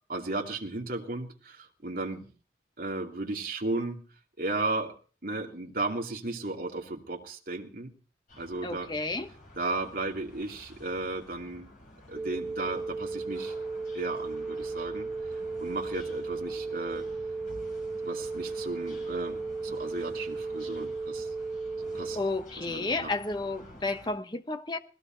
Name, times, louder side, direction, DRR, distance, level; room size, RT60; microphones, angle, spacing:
voice 1, 0.1-2.3 2.8-4.0 4.4-4.9 5.2-7.9 8.4-8.9 9.6-11.7 12.1-13.5 13.9-15.1 15.6-17.0 18.0-21.3 21.8-22.2 22.7-23.1, right 2 dB, 50° right, 2.6 m, -35 dB
sound 1, 8.3-24.1, left 1 dB, 45° left, 5.9 m, -51 dB
voice 2, 8.6-9.3 22.1-24.8, left 3 dB, 25° left, 1.1 m, -32 dB
sound 2, 12.2-22.2, right 3 dB, ahead, 1.7 m, -35 dB
19.5 x 15.5 x 4.5 m
head